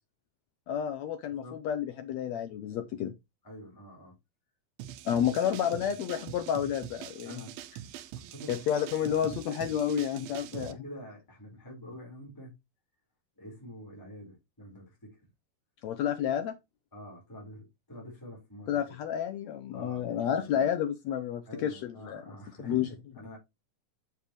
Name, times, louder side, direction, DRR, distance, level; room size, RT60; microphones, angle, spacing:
voice 1, 0.7-3.1 5.0-7.4 8.5-10.7 15.8-16.5 18.7-22.2 22.6-22.9, left 9 dB, 85° left, 1.5 m, -30 dB
voice 2, 1.2-1.6 3.4-4.2 5.1-5.4 5.7-5.9 7.2-7.6 8.3-8.6 9.6-9.8 10.2-12.6 13.4-15.2 16.9-19.0 19.7-20.6 21.5-23.4, equal, 5° left, 3.9 m, -47 dB
sound 1, 4.8-10.7, right 11 dB, 85° right, 2.5 m, -44 dB
7.3 x 6.9 x 3.0 m
omnidirectional pair, 4.1 m